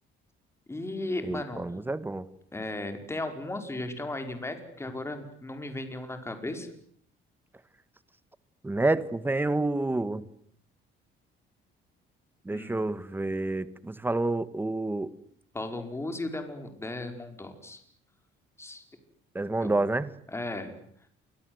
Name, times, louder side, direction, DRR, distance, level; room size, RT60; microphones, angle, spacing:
voice 1, 0.7-1.6 2.5-6.7 12.5-12.8 15.5-17.8 18.6-18.8 19.6-19.7 20.3-20.7, left 2 dB, 10° left, 7 dB, 5.0 m, -35 dB
voice 2, 1.2-2.3 8.6-10.3 12.4-15.1 19.3-20.1, right 2 dB, 10° right, 15 dB, 1.6 m, -28 dB
29.0 x 25.5 x 8.0 m, 0.64 s
cardioid pair, 140°, 20 cm